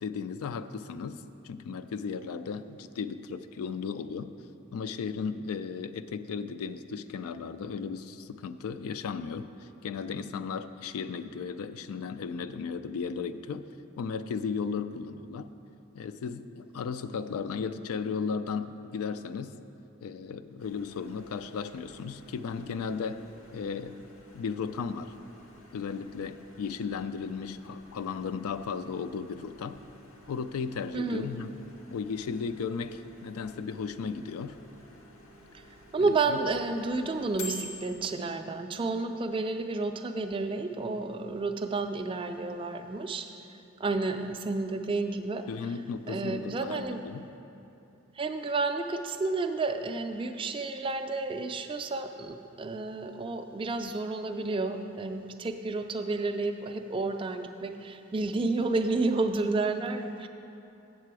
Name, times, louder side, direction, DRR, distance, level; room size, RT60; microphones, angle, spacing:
voice 1, 0.0-4.3 4.7-13.7 14.0-15.5 15.9-19.5 20.0-23.2 23.5-24.0 24.3-25.1 25.7-29.8 30.3-31.5 31.9-34.6 36.0-36.4 45.5-47.3, left 5 dB, 90° left, 12 dB, 0.3 m, -35 dB
Microwave oven, 20.6-38.4, left 2 dB, 70° left, 0.8 m, -50 dB
voice 2, 30.9-31.3 35.9-43.3 43.8-45.5 46.1-47.0 48.2-60.3, right 3 dB, 25° right, 6 dB, 0.3 m, -31 dB
7.6 x 7.5 x 4.7 m, 2.8 s
head